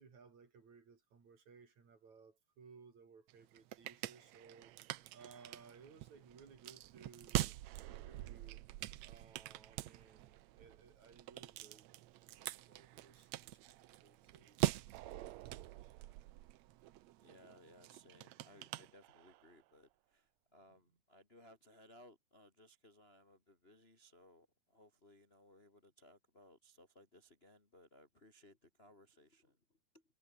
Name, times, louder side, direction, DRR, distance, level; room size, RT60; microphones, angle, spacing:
voice 1, 0.0-4.7 5.1-8.6 9.0-11.9 12.3-14.8 20.7-20.8, right 5 dB, 55° right, 5.2 m, -61 dB
sound 1, 3.3-19.5, right 15 dB, 80° right, 1.6 m, -44 dB
voice 2, 17.2-30.0, left 1 dB, 20° left, 1.8 m, -63 dB
omnidirectional pair, 4.1 m